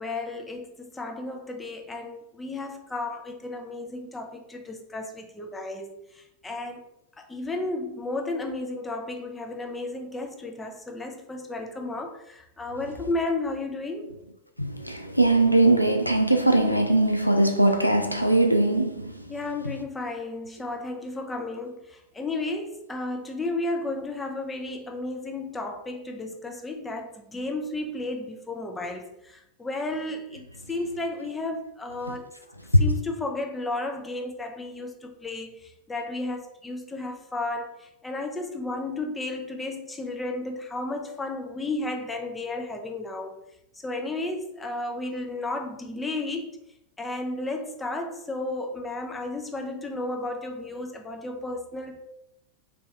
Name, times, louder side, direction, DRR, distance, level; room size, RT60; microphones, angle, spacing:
voice 1, 0.0-6.8 7.2-14.1 19.3-32.3 32.8-43.3 43.8-46.5 47.0-52.0, left 2 dB, 10° left, 0.6 m, -33 dB
voice 2, 14.6-19.3 32.7-32.8, right 1 dB, 90° left, 0.3 m, -21 dB
3.4 x 2.9 x 3.1 m
figure-of-eight pair, 90°, 0 cm